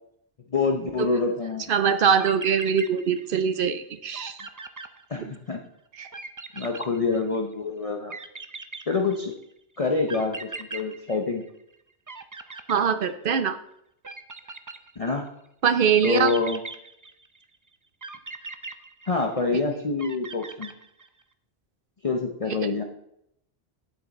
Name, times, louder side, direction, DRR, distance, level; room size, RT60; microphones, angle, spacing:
voice 1, 0.5-1.7 5.1-5.6 6.5-8.1 8.9-9.3 9.8-11.4 15.0-15.3 16.0-16.6 19.1-20.7 22.0-22.8, left 4 dB, 35° left, 2 dB, 0.8 m, -26 dB
voice 2, 1.7-4.4 5.9-6.1 12.7-13.6 15.6-16.4 22.5-22.7, right 7 dB, 60° right, 11 dB, 0.7 m, -23 dB
sound 1, 2.2-3.5 3.8-3.9 4.1-5.6 6.1-7.5 8.1-9.4 10.1-11.8 12.1-13.5 14.0-15.3 16.0-17.4 18.0-19.5 20.0-21.2, right 3 dB, 30° right, 0.3 m, -40 dB
8.8 x 7.9 x 4.1 m, 0.75 s
omnidirectional pair, 1.1 m